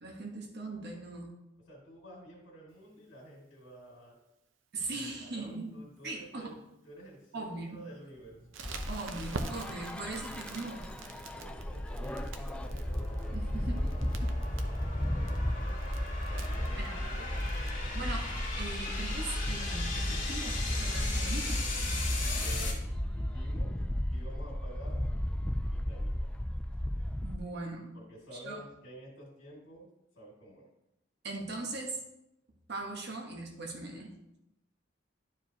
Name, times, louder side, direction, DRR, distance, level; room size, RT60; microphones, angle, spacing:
voice 1, 0.0-1.4 4.7-5.7 6.0-6.5 7.3-7.8 8.9-10.9 13.3-14.3 16.7-17.0 17.9-18.3 18.6-21.6 27.2-27.9 28.3-28.6 31.2-32.0 32.7-34.1, right 2 dB, 60° right, 1 dB, 1.3 m, -40 dB
voice 2, 1.7-4.2 4.9-6.6 6.8-8.6 11.4-12.8 14.5-15.8 16.2-17.9 22.3-23.8 24.1-25.0 25.7-26.3 27.9-29.9 30.1-30.7, right 1 dB, 70° left, -3 dB, 2.4 m, -51 dB
sound 1, 8.2-22.7, left 3 dB, 45° left, 2.1 m, -40 dB
Crackle, 8.5-17.7, right 3 dB, 80° right, 0.7 m, -46 dB
sound 2, 8.6-27.4, left 1 dB, 5° left, 0.3 m, -34 dB
11.5 x 4.8 x 2.9 m, 0.87 s
head